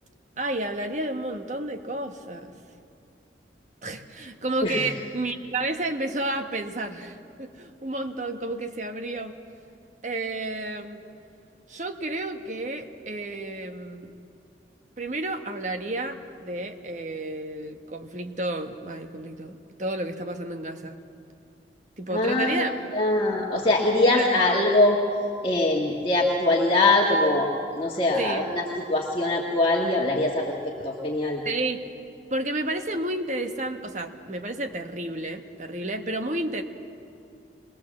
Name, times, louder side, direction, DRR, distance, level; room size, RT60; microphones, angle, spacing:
voice 1, 0.4-2.6 3.8-9.3 10.0-11.0 11.7-14.1 15.0-21.0 22.0-22.7 24.1-24.5 28.2-28.5 31.4-31.8 32.3-36.6, right 2 dB, 40° right, 6 dB, 1.3 m, -31 dB
voice 2, 22.1-22.6 22.9-25.0 25.4-27.5 27.7-30.5 30.8-31.4, left 2 dB, 30° left, -3 dB, 1.6 m, -22 dB
23.0 x 19.5 x 7.4 m, 2.5 s
head